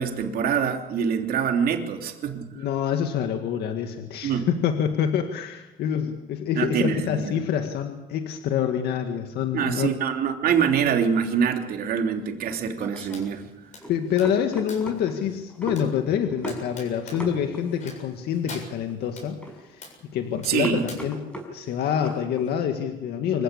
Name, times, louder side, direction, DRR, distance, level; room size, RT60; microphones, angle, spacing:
voice 1, 0.0-2.4 4.2-4.5 6.5-7.4 9.5-13.4 20.5-20.8, right 7 dB, 65° right, 4 dB, 3.3 m, -25 dB
voice 2, 2.5-9.9 13.9-19.8 20.1-23.4, left 8 dB, 75° left, 5 dB, 1.9 m, -26 dB
sound 1, 12.1-22.5, right 1 dB, 5° left, 6.1 m, -39 dB
sound 2, 13.1-13.3 13.7-15.0 15.7-15.9 16.5-17.2 17.8-18.1 18.5-19.3 19.8-20.0 20.4-21.0, left 3 dB, 45° left, 7.7 m, -42 dB
25.5 x 16.0 x 8.4 m, 1.0 s
cardioid pair, 110°, 17 cm